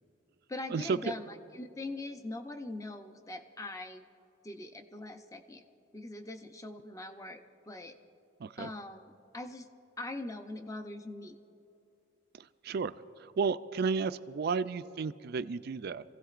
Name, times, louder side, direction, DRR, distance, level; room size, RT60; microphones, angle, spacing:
voice 1, 0.5-4.0 4.4-5.6 5.9-7.4 7.7-8.0 8.6-9.7 10.0-11.4, left 2 dB, 15° left, 7 dB, 0.6 m, -42 dB
voice 2, 13.2-16.0, right 5 dB, 50° right, 13 dB, 0.3 m, -32 dB
25.5 x 16.0 x 2.5 m, 2.8 s
head